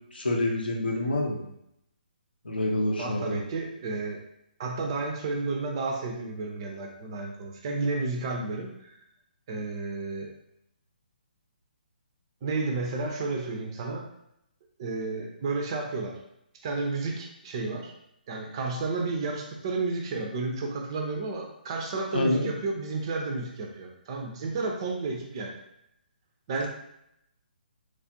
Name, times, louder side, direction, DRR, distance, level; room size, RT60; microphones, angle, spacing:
voice 1, 0.1-1.4 2.4-3.4 22.1-22.5, left 1 dB, 75° left, -1 dB, 0.8 m, -27 dB
voice 2, 3.0-4.2 4.6-8.9 9.5-10.3 12.4-14.1 14.8-16.2 16.6-17.9 18.3-25.6 26.5-26.7, right 3 dB, 30° right, 1 dB, 0.5 m, -32 dB
3.3 x 2.4 x 2.7 m, 0.78 s
figure-of-eight pair, 135°, 5 cm